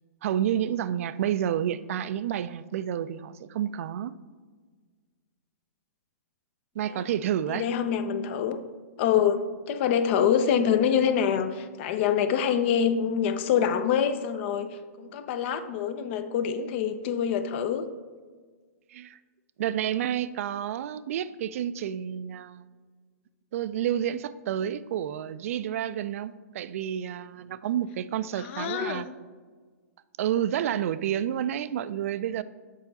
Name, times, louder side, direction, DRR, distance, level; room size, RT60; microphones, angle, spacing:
voice 1, 0.2-4.1 6.8-7.6 18.9-19.2 19.6-22.6 23.5-29.1 30.2-32.4, right 10 dB, 60° right, 15 dB, 0.4 m, -29 dB
voice 2, 7.5-8.6 9.0-9.4 9.7-17.9 28.3-29.0, left 8 dB, 45° left, 10 dB, 0.6 m, -25 dB
7.3 x 4.7 x 4.0 m, 1.5 s
hypercardioid pair, 130°, 9 cm